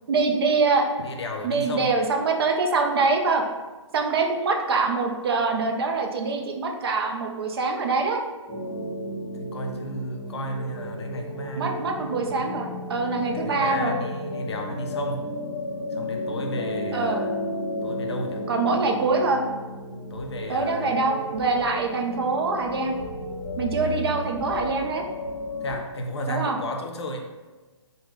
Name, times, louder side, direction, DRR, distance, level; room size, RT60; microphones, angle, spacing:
voice 1, 0.1-0.9 1.4-3.4 3.9-8.2 11.6-13.9 16.9-17.2 18.5-19.4 20.5-22.9 23.6-25.0 26.3-26.6, right 4 dB, 50° right, 2 dB, 0.4 m, -24 dB
voice 2, 1.0-2.0 9.4-11.8 12.2-12.5 13.2-15.3 15.9-17.3 17.8-18.4 20.1-20.9 23.7-24.2 25.6-27.2, equal, 55° left, 3 dB, 0.5 m, -33 dB
sound 1, 8.5-25.8, left 1 dB, 20° left, 0.9 m, -33 dB
3.3 x 2.1 x 3.3 m, 1.2 s
figure-of-eight pair, 125°, 16 cm